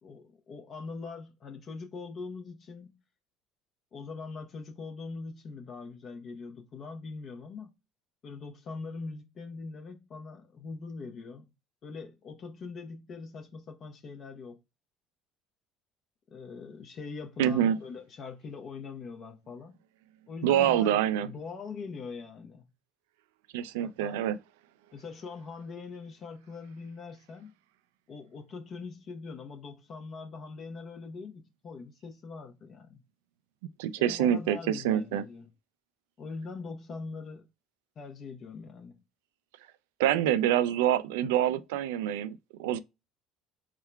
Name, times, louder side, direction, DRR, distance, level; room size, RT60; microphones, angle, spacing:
voice 1, 0.0-2.9 3.9-7.7 8.2-11.4 11.8-14.6 16.3-19.7 20.3-22.7 23.8-24.2 24.9-27.5 28.1-33.0 34.0-35.5 36.2-37.4 38.0-38.9, left 4 dB, 45° left, 0.8 m, -42 dB
voice 2, 17.4-17.8 20.4-21.3 23.5-24.4 33.8-35.2 40.0-42.8, right 11 dB, 90° right, 0.3 m, -26 dB
3.7 x 2.2 x 4.4 m
supercardioid pair, 90°, 0 cm